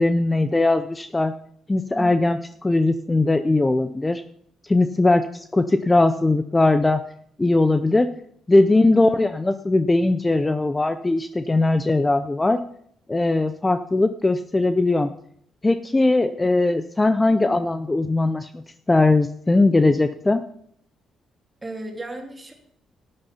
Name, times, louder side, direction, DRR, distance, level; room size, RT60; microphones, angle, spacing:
voice 1, 0.0-1.3 1.7-4.2 4.7-7.0 7.4-8.1 8.5-12.6 13.1-15.1 15.6-18.6 18.9-20.4, left 2 dB, 20° left, 10 dB, 0.6 m, -20 dB
voice 2, 21.6-22.5, right 1 dB, 20° right, 3 dB, 2.9 m, -34 dB
12.5 x 9.9 x 5.7 m, 0.66 s
cardioid pair, 90°, 0 cm